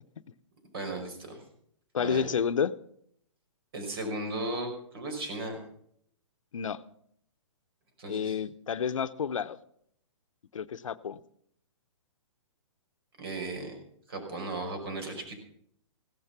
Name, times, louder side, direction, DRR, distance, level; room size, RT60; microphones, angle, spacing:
voice 1, 0.7-1.4 2.0-2.3 3.7-5.6 8.0-8.4 13.2-13.8 14.1-15.4, right 2 dB, 50° right, 5 dB, 5.6 m, -36 dB
voice 2, 1.9-2.7 6.5-6.8 8.1-9.6 10.5-11.2, left 7 dB, 90° left, 13 dB, 0.9 m, -30 dB
16.0 x 12.5 x 6.0 m, 0.67 s
hypercardioid pair, 165°, 16 cm